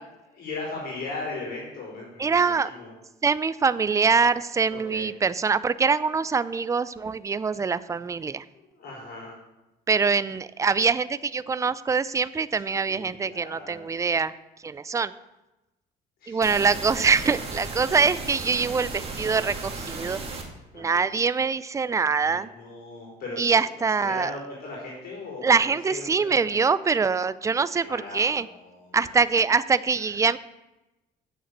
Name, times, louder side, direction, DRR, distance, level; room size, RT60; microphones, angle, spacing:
voice 1, 0.3-2.9 4.7-5.1 8.5-9.4 12.6-14.0 16.2-16.6 19.0-19.2 20.0-20.3 20.7-21.0 22.2-23.7 24.0-26.6 27.7-29.2 30.0-30.1, left 3 dB, 65° left, -4 dB, 4.0 m, -39 dB
voice 2, 2.2-2.7 3.2-8.4 9.9-14.3 14.6-15.1 16.3-20.2 20.7-22.5 23.4-24.3 25.4-28.5 28.9-30.4, right 5 dB, 20° right, 16 dB, 0.4 m, -24 dB
sound 1, 16.4-20.4, right 3 dB, 35° right, 1.9 m, -35 dB
7.7 x 6.7 x 8.0 m, 1.0 s
cardioid pair, 110°, 17 cm